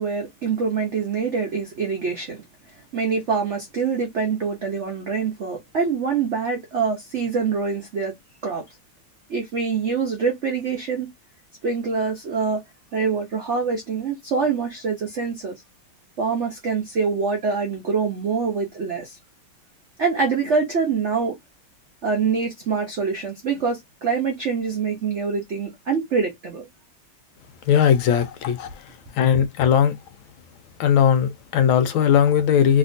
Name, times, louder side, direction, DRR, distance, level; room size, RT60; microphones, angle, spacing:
voice 1, 0.0-2.4 2.9-8.1 8.4-8.6 9.3-11.1 11.6-12.6 12.9-15.6 16.2-19.2 20.0-21.4 22.0-26.7, right 5 dB, 85° right, 0.6 m, -25 dB
voice 2, 27.7-28.8 29.1-30.0 30.8-32.8, left 8 dB, 80° left, 1.3 m, -18 dB
3.3 x 2.8 x 2.5 m
omnidirectional pair, 2.3 m